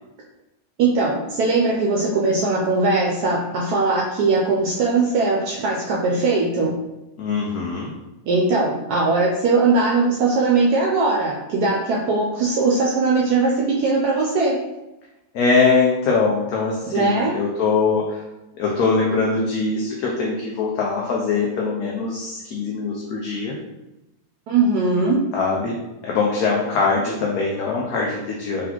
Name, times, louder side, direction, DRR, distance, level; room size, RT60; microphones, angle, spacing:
voice 1, 0.8-6.8 8.2-14.6 16.9-17.4 24.5-25.2, right 3 dB, 75° right, -2 dB, 1.1 m, -20 dB
voice 2, 7.2-7.9 15.3-18.2 18.6-23.6 25.3-25.8 26.0-28.7, left 4 dB, 70° left, -2 dB, 1.1 m, -22 dB
4.0 x 3.5 x 2.9 m, 0.98 s
omnidirectional pair, 1.8 m